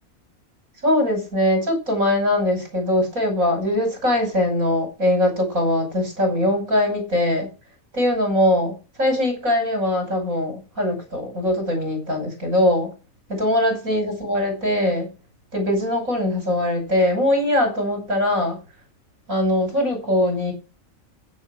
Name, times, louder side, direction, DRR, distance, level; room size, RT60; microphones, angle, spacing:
voice 1, 0.8-7.5 7.9-12.9 13.3-15.1 15.5-18.6 19.3-20.5, left 1 dB, 70° right, 2 dB, 6.5 m, -21 dB
15.5 x 7.1 x 6.3 m, 0.32 s
omnidirectional pair, 1.5 m